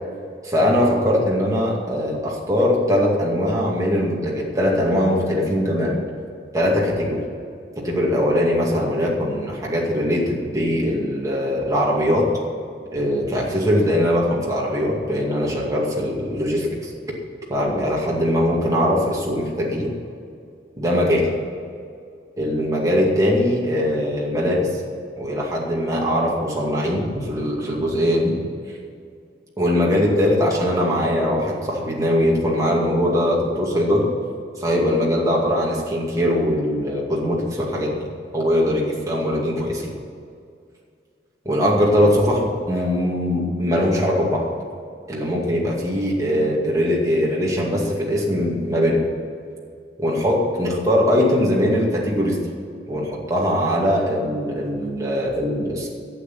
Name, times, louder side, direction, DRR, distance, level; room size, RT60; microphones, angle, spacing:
voice 1, 0.4-6.0 6.5-7.2 7.8-12.3 12.9-16.9 17.5-19.9 20.8-21.3 22.4-24.7 25.2-28.4 29.6-34.1 34.6-38.1 38.3-39.9 41.5-44.5 45.1-49.0 50.0-52.4 52.9-55.9, equal, 20° right, -4 dB, 2.3 m, -21 dB
11.5 x 7.9 x 9.4 m, 2.3 s
head